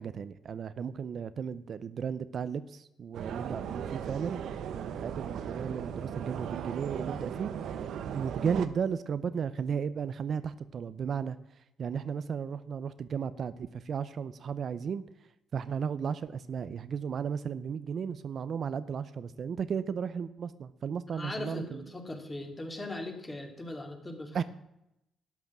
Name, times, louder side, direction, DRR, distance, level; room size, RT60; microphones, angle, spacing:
voice 1, 0.0-11.4 11.8-15.0 15.5-21.9 24.3-24.4, right 7 dB, 55° right, 14 dB, 0.7 m, -35 dB
sound 1, 3.1-8.7, right 8 dB, 75° right, 1.1 m, -37 dB
voice 2, 21.1-24.4, left 2 dB, 20° left, 4 dB, 3.0 m, -39 dB
12.0 x 10.5 x 7.4 m, 0.85 s
cardioid pair, 90°, 0 cm